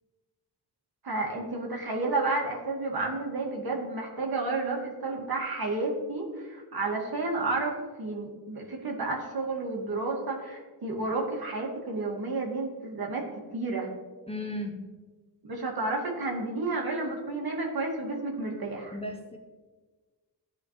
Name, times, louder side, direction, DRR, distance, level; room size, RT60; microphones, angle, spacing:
voice 1, 1.0-13.3 13.5-13.9 15.4-19.0, right 3 dB, 55° right, -1 dB, 2.1 m, -31 dB
voice 2, 14.3-14.9 18.9-19.4, left 1 dB, 15° left, 2 dB, 0.8 m, -35 dB
14.5 x 5.0 x 3.2 m, 1.3 s
wide cardioid pair, 100°, 43 cm